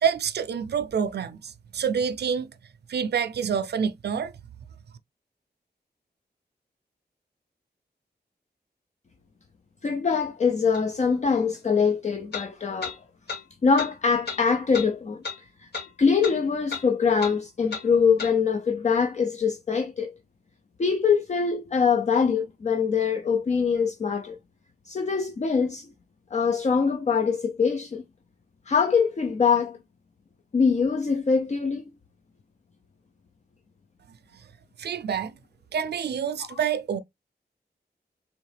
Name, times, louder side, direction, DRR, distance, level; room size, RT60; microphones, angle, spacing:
voice 1, 0.0-2.5 2.9-4.3 34.8-35.3 35.7-37.0, right 7 dB, 75° right, 0.4 m, -27 dB
voice 2, 9.8-12.9 13.6-15.2 15.6-15.7 16.0-20.1 20.8-24.4 24.9-25.9 26.3-28.0 28.7-29.8 30.5-31.8 36.5-36.6, left 5 dB, 40° left, 0.5 m, -23 dB
sound 1, 10.7-10.8 12.3-12.5 12.8-13.0 13.3-13.4 13.8-13.9 14.3-14.4 14.7-14.9 15.2-15.4 15.7-15.9 16.2-16.4 16.7-16.9 17.2-17.4 17.7-17.9 18.2-18.3, left 5 dB, 70° left, 2.4 m, -33 dB
3.7 x 3.1 x 3.2 m
wide cardioid pair, 100°, 17 cm